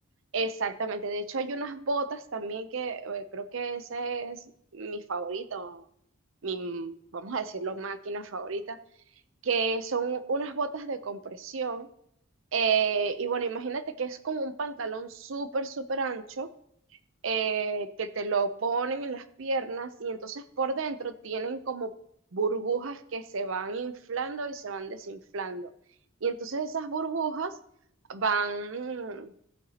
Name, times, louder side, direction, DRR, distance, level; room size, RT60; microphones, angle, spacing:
voice 1, 0.3-4.4 4.7-5.8 6.4-8.8 9.4-11.9 12.5-16.5 17.2-21.9 22.3-25.7 26.2-27.5 28.1-29.3, right 4 dB, 70° right, 11 dB, 0.6 m, -31 dB
15.0 x 8.8 x 2.9 m, 0.72 s
head